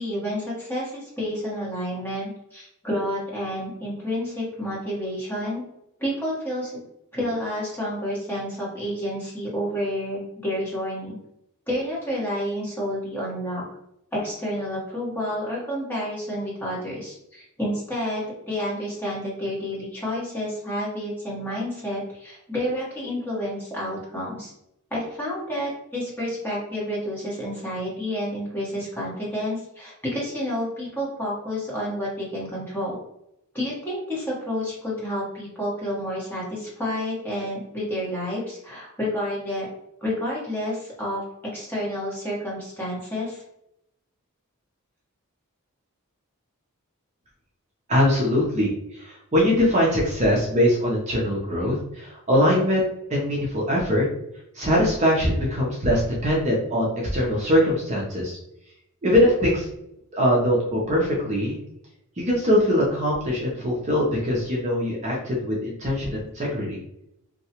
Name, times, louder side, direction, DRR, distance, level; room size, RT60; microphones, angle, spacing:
voice 1, 0.0-5.6 6.0-6.8 7.1-11.2 11.7-13.6 14.1-24.5 24.9-33.0 33.5-39.7 40.0-41.2 41.5-43.4, equal, 10° left, -7 dB, 1.2 m, -29 dB
voice 2, 47.9-54.1 54.5-58.4 59.0-59.7 60.1-61.6 62.2-66.8, equal, 35° right, -4 dB, 0.6 m, -22 dB
2.7 x 2.2 x 2.9 m, 0.80 s
head